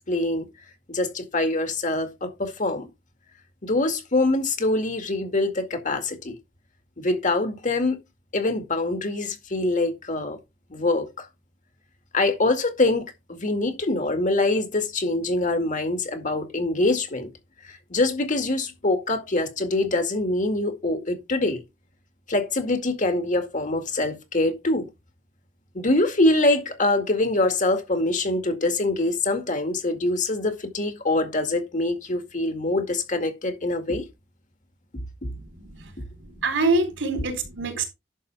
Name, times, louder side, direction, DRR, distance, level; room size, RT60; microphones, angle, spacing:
voice 1, 0.1-0.5 0.9-2.9 3.6-6.3 7.0-8.0 8.3-10.4 10.7-11.3 12.1-17.3 17.7-21.6 22.3-24.9 25.7-34.0, left 2 dB, 45° left, 2.1 m, -24 dB
voice 2, 35.3-35.9 36.4-37.8, right 3 dB, 75° right, 3.7 m, -25 dB
11.0 x 6.8 x 3.4 m
head